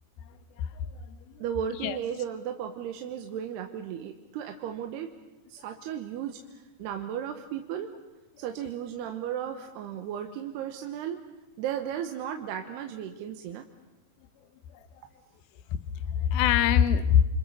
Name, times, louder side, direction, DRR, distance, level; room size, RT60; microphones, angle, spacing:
voice 1, 0.3-0.7 1.1-1.4 1.8-2.0 16.2-17.3, left 9 dB, 70° left, 11 dB, 2.8 m, -24 dB
voice 2, 1.4-5.1 5.5-7.9 8.4-11.2 11.6-13.7, right 9 dB, 80° right, 6 dB, 3.1 m, -35 dB
29.0 x 26.0 x 6.9 m, 1.1 s
omnidirectional pair, 4.9 m